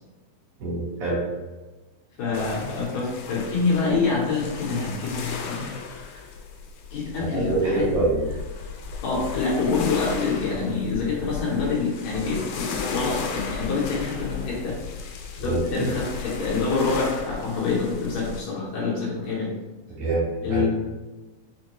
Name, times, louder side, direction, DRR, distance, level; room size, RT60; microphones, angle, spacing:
voice 1, 0.6-1.2 7.3-8.2 15.4-15.9 20.0-20.7, right 3 dB, 75° right, -7 dB, 3.0 m, -25 dB
voice 2, 2.2-5.8 6.9-8.0 9.0-14.8 15.4-19.5 20.4-20.7, left 4 dB, 70° left, -5 dB, 2.0 m, -26 dB
sound 1, 2.3-18.4, left 5 dB, 85° left, 2.1 m, -35 dB
5.8 x 2.2 x 2.9 m, 1.2 s
omnidirectional pair, 3.6 m